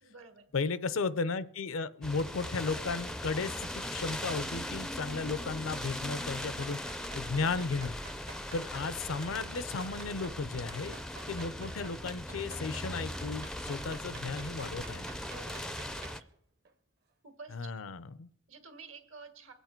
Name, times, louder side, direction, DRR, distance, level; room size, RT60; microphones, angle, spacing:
voice 1, 0.0-0.6 15.2-16.3 17.2-17.9 18.5-19.5, right 4 dB, 75° right, 7 dB, 1.8 m, -51 dB
voice 2, 0.5-8.0 8.5-11.0 11.3-15.1 17.5-18.3, left 4 dB, 80° left, 16 dB, 0.6 m, -35 dB
sound 1, 2.0-16.2, left 1 dB, 5° left, 0.4 m, -39 dB
sound 2, 6.0-8.9 9.5-10.4 10.7-16.3 16.6-16.7, right 5 dB, 50° right, 0.8 m, -51 dB
23.0 x 8.2 x 4.5 m, 0.72 s
head